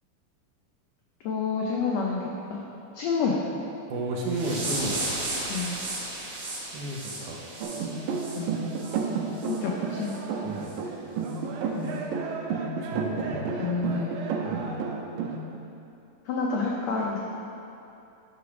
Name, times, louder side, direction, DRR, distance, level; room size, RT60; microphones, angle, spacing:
voice 1, 1.2-2.6 2.9-3.4 5.5-5.7 8.3-8.6 9.5-10.1 11.7-12.0 13.6-14.2 16.2-17.2, left 4 dB, 85° left, -2 dB, 1.5 m, -29 dB
voice 2, 3.9-5.0 6.7-7.4 10.4-10.8 12.8-13.5 14.5-14.6, right 2 dB, 70° right, -1 dB, 2.2 m, -32 dB
sound 1, 4.2-9.0 9.3-9.6 10.0-10.2 10.6-10.8 11.3-11.4, right 2 dB, 55° right, 2.4 m, -35 dB
sound 2, 7.6-15.4, right 5 dB, 85° right, 2.4 m, -31 dB
8.2 x 5.1 x 6.0 m, 2.7 s
omnidirectional pair, 4.0 m